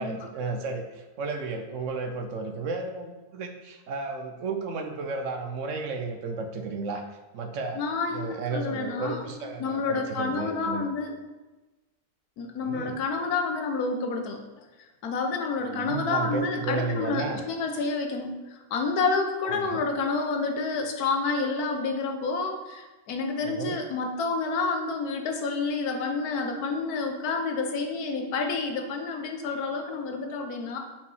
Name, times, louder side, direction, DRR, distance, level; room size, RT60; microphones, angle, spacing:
voice 1, 0.0-7.1 7.3-7.8 8.1-10.9 12.6-13.0 15.7-17.4 19.4-19.8 23.4-23.8, right 4 dB, 65° right, 5 dB, 0.9 m, -33 dB
voice 2, 7.8-9.2 9.6-11.1 12.4-14.4 15.0-18.4 18.7-30.8, left 4 dB, 80° left, 4 dB, 1.4 m, -29 dB
5.4 x 5.1 x 4.7 m, 1.1 s
omnidirectional pair, 1.6 m